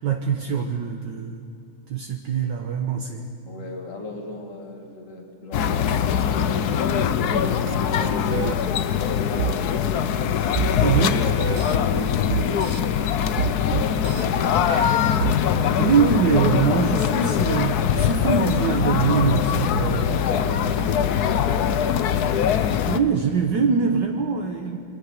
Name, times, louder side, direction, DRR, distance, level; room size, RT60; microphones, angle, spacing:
voice 1, 0.0-1.5 1.9-3.3 10.8-11.2 15.8-20.1 22.5-24.8, right 6 dB, 65° right, 3 dB, 1.7 m, -23 dB
voice 2, 3.4-6.0 6.3-8.6 8.9-10.0 11.2-13.0 13.3-15.0 19.9-21.9, left 2 dB, 40° left, 1 dB, 2.8 m, -36 dB
sound 1, 5.5-23.0, left 8 dB, 60° left, 1.2 m, -22 dB
sound 2, 7.7-7.8 8.0-8.6 9.4-9.6 10.5-11.8 12.3-12.8 13.4-14.2 14.7-15.4, right 8 dB, 80° right, 0.7 m, -27 dB
27.5 x 23.0 x 6.6 m, 2.6 s
omnidirectional pair, 2.2 m